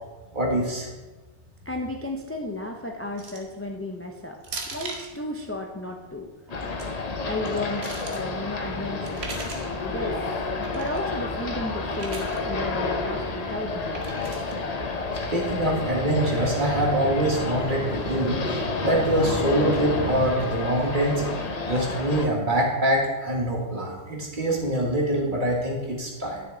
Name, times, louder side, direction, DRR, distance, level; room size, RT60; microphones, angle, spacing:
voice 1, 0.3-0.9 15.3-21.2 21.6-26.4, right 1 dB, 40° right, -2 dB, 1.7 m, -24 dB
voice 2, 1.7-6.3 7.2-9.4 9.8-10.2 10.6-14.0, left 2 dB, 20° left, 1 dB, 0.4 m, -33 dB
sound 1, 3.2-3.6 4.4-5.1 6.5-6.8 7.4-8.2 9.1-9.7 10.6-11.0 12.0-12.4 13.9-14.5, right 3 dB, 60° right, 1.3 m, -38 dB
sound 2, 6.5-22.3, left 3 dB, 40° left, 0.7 m, -30 dB
sound 3, 8.6-20.3, right 1 dB, 55° left, 1.5 m, -38 dB
9.8 x 6.3 x 3.9 m, 1.2 s
omnidirectional pair, 1.3 m